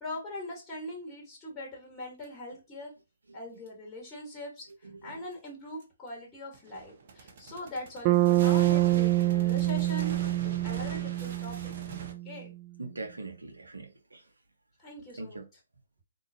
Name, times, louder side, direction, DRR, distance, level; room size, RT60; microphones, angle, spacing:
voice 1, 0.0-2.9 3.3-4.7 5.0-11.7 12.2-12.5 14.8-15.4, left 1 dB, 15° left, 1.4 m, -41 dB
sound 1, 2.2-2.3 3.7-3.8 5.8-5.9 6.5-12.1, right 4 dB, 50° right, 0.8 m, -43 dB
voice 2, 3.3-3.6 4.8-5.2 12.8-14.3 15.2-15.4, right 3 dB, 85° right, 1.1 m, -42 dB
Bass guitar, 8.0-12.1, right 16 dB, 25° right, 0.4 m, -26 dB
3.7 x 2.9 x 2.7 m
figure-of-eight pair, 140°, 0 cm